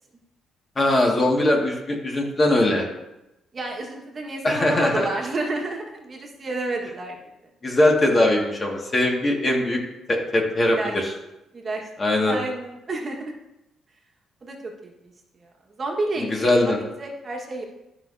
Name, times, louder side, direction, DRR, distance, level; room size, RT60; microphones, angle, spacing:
voice 1, 0.8-2.8 4.4-5.1 7.6-9.8 10.1-11.1 12.0-12.4 16.2-16.8, left 1 dB, 30° left, 0 dB, 1.8 m, -21 dB
voice 2, 3.5-7.5 10.6-10.9 11.5-11.9 12.2-13.3 14.4-15.1 15.4-17.6, right 2 dB, 40° right, 0 dB, 1.4 m, -30 dB
12.5 x 5.7 x 2.7 m, 0.93 s
cardioid pair, 90°, 0 cm